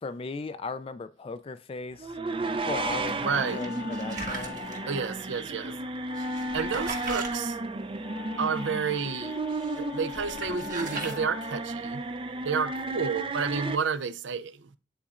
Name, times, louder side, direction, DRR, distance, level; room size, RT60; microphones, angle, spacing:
voice 1, 0.0-2.1 2.6-4.6, left 3 dB, 30° left, 0.4 m, -37 dB
sound 1, 2.0-13.8, right 2 dB, 30° right, 0.5 m, -33 dB
Wind instrument woodwind instrument, 2.7-11.8, left 9 dB, 50° left, 0.8 m, -43 dB
voice 2, 3.2-3.6 4.9-5.7 6.5-7.6 8.4-9.4 9.8-12.0 12.4-14.7, right 5 dB, 75° right, 0.5 m, -30 dB
sound 2, 3.6-4.8 6.2-7.3 9.5-9.8 10.1-11.2, right 3 dB, 45° right, 1.6 m, -38 dB
10.0 x 4.1 x 2.4 m
head